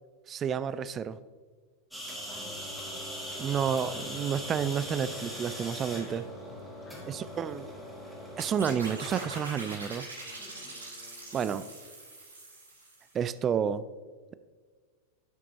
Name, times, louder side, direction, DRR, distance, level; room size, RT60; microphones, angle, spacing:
voice 1, 0.3-1.2 3.4-6.3 7.1-7.7 8.4-10.1 11.3-11.7 13.1-13.9, right 7 dB, 25° right, 15 dB, 0.3 m, -30 dB
sound 1, 1.9-9.3, equal, ahead, 2.3 m, -40 dB
voice 2, 2.3-3.6 6.8-7.6 10.4-10.8, left 1 dB, 20° left, 0 dB, 1.8 m, -55 dB
sound 2, 3.5-11.9, left 6 dB, 35° left, 0.9 m, -52 dB
sound 3, 8.4-13.2, right 2 dB, 75° right, 1.9 m, -43 dB
10.5 x 6.0 x 2.9 m, 1.5 s
figure-of-eight pair, 90°, 0 cm